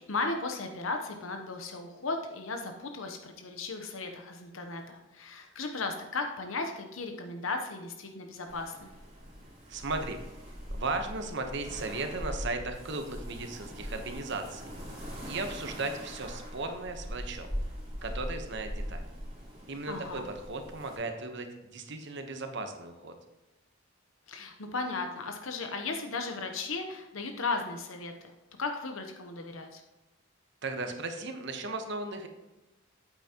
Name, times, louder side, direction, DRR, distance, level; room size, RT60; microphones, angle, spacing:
voice 1, 0.0-8.9 19.9-20.3 24.3-28.3 28.6-29.8, left 3 dB, 75° left, 4 dB, 0.9 m, -36 dB
sound 1, 8.5-21.0, equal, 30° right, 3.0 m, -41 dB
voice 2, 9.7-10.2 10.7-14.6 15.2-17.6 18.0-19.0 19.7-23.1 30.6-32.3, right 3 dB, 60° right, 6 dB, 1.0 m, -36 dB
9.0 x 8.2 x 3.0 m, 1.0 s
head